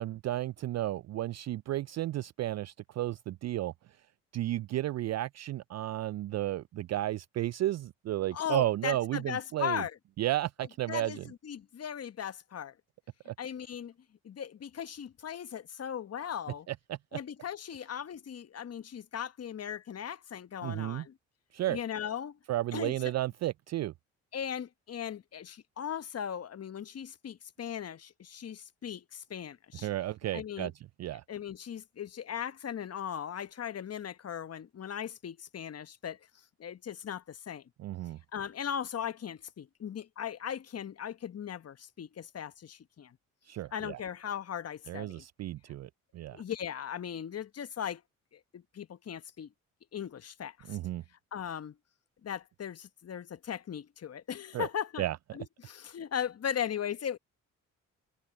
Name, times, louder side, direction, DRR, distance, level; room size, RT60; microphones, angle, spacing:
voice 1, 0.0-3.7 4.3-9.8 10.2-11.2 13.3-13.4 16.7-17.0 20.6-21.0 21.5-21.8 22.5-23.9 29.8-30.7 31.0-31.2 37.8-38.2 43.5-44.0 44.9-46.4 50.7-51.0 54.5-54.7 55.0-55.2, right 14 dB, 45° right, 0.4 m, -33 dB
voice 2, 8.3-10.0 10.9-12.7 13.4-13.9 14.2-16.7 17.1-21.2 21.7-22.4 22.7-23.1 24.3-29.9 30.3-30.7 31.3-36.2 36.6-37.6 38.3-43.2 43.7-45.2 46.3-48.0 48.3-49.5 49.9-50.8 51.3-51.7 52.2-55.0 55.3-57.2, left 8 dB, 40° left, 1.1 m, -38 dB
hypercardioid pair, 45°, 39 cm